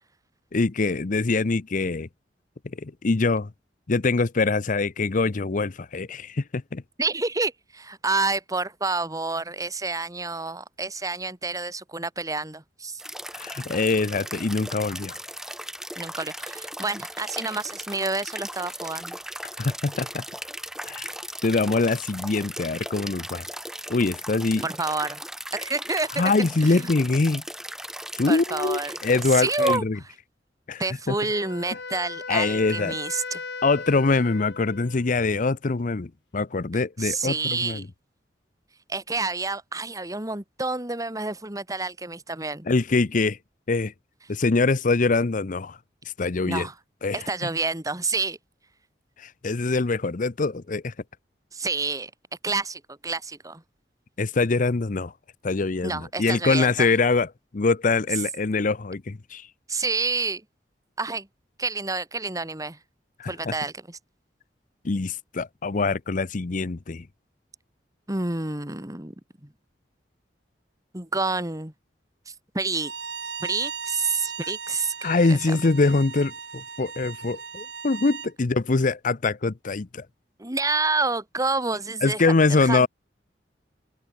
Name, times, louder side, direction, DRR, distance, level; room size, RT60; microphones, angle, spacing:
voice 1, 0.5-2.1 2.8-3.5 3.9-6.8 13.3-15.2 19.6-20.2 20.8-21.1 21.4-23.5 23.9-24.6 26.2-27.4 28.2-30.0 30.7-30.8 31.1-31.2 32.3-33.0 33.6-37.9 42.7-43.4 43.7-43.9 44.3-45.8 46.2-46.7 47.0-47.3 49.2-50.9 54.2-55.1 55.4-57.3 57.5-59.5 63.2-63.5 64.8-67.1 75.0-80.1 82.0-82.9, left 3 dB, 50° left, 0.7 m, -24 dB
voice 2, 7.0-13.0 16.0-19.2 24.6-25.2 25.5-26.3 26.6-26.9 28.3-28.9 29.3-29.8 30.8-33.4 37.0-37.9 38.9-42.7 46.5-46.7 47.1-48.4 51.5-52.1 52.4-53.6 55.8-56.9 59.7-60.4 61.0-61.3 61.6-62.8 63.3-64.0 68.1-69.1 69.4-69.5 70.9-71.7 72.5-72.9 73.4-74.9 75.3-75.6 80.4-82.9, right 3 dB, 20° right, 2.4 m, -28 dB
sound 1, 13.0-29.8, right 1 dB, 5° right, 3.6 m, -37 dB
Wind instrument woodwind instrument, 31.1-35.2, left 4 dB, 75° left, 7.6 m, -37 dB
Bowed string instrument, 72.7-78.3, right 6 dB, 70° right, 3.0 m, -37 dB
head